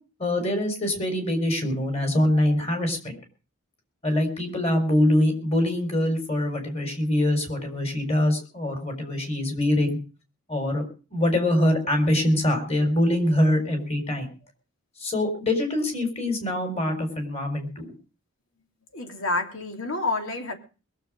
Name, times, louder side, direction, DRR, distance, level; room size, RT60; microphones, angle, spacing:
voice 1, 0.2-3.1 4.0-10.0 10.5-10.8 11.1-14.3 15.0-17.9, left 1 dB, 30° left, 5 dB, 4.5 m, -24 dB
voice 2, 18.9-20.5, left 2 dB, 65° left, 4 dB, 3.0 m, -28 dB
21.5 x 7.6 x 6.4 m, 0.36 s
head